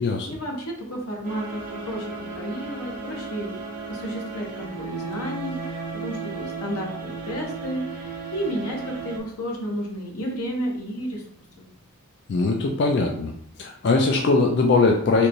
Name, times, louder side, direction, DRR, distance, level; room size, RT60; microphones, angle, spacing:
voice 1, 0.3-1.4 1.8-3.6 3.9-11.2 11.6-11.7, equal, 90° left, 0 dB, 0.9 m, -32 dB
sound 1, 1.2-9.2, right 4 dB, 40° right, 0.6 m, -35 dB
voice 2, 12.3-13.3 13.6-15.3, left 3 dB, 50° left, 1 dB, 0.3 m, -20 dB
3.3 x 3.0 x 2.6 m, 0.66 s
head